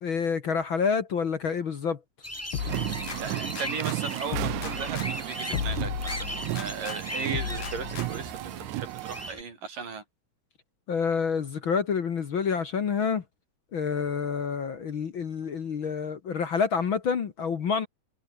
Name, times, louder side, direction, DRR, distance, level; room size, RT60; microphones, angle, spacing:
voice 1, 0.0-2.0 10.9-13.2 13.7-17.9, left 6 dB, 50° left, 1.5 m, -28 dB
sound 1, 2.2-9.4, left 1 dB, 5° left, 1.6 m, -39 dB
sound 2, 2.5-4.0 4.3-7.0 7.3-8.4, left 8 dB, 80° left, 4.7 m, -35 dB
sound 3, 2.6-9.3, right 17 dB, 85° right, 1.7 m, -34 dB
voice 2, 3.2-10.0, right 5 dB, 60° right, 7.3 m, -37 dB
omnidirectional pair, 4.3 m